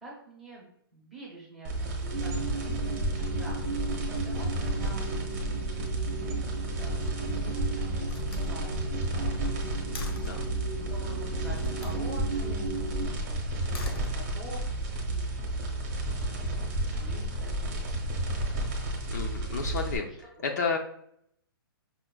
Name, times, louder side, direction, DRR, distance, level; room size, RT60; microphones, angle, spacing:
voice 1, 0.0-5.1 5.6-7.0 7.3-9.7 10.0-10.4 10.8-12.6 13.1-15.2 16.3-18.2, right 1 dB, ahead, -6 dB, 0.7 m, -47 dB
sound 1, 1.6-20.0, right 1 dB, 30° right, 0.8 m, -32 dB
sound 2, 2.1-13.1, right 5 dB, 65° right, 0.5 m, -37 dB
Slam, 7.0-7.6 8.0-10.5 11.6-12.0 13.5-14.7, left 3 dB, 80° left, 0.8 m, -44 dB
voice 2, 19.1-20.1 20.4-20.8, left 5 dB, 45° left, 2 dB, 0.4 m, -31 dB
5.5 x 2.0 x 2.2 m, 0.71 s
hypercardioid pair, 170°, 13 cm